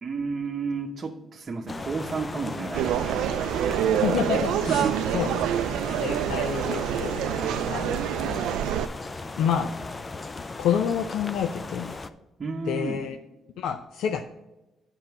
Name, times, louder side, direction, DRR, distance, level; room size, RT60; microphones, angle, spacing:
voice 1, 0.0-3.2 4.6-5.1 7.4-7.6 12.4-13.0, right 4 dB, 40° right, 0 dB, 0.9 m, -32 dB
sound 1, 1.7-12.1, left 3 dB, 30° left, 0.5 m, -37 dB
sound 2, 2.7-8.9, right 10 dB, 90° right, 0.3 m, -26 dB
voice 2, 3.9-5.4 5.9-7.3 7.7-8.4 9.4-9.7 10.6-12.0 12.7-13.2 13.6-14.2, left 8 dB, 85° left, 7 dB, 0.5 m, -28 dB
9.0 x 5.6 x 5.5 m, 0.99 s
cardioid pair, 90°, 0 cm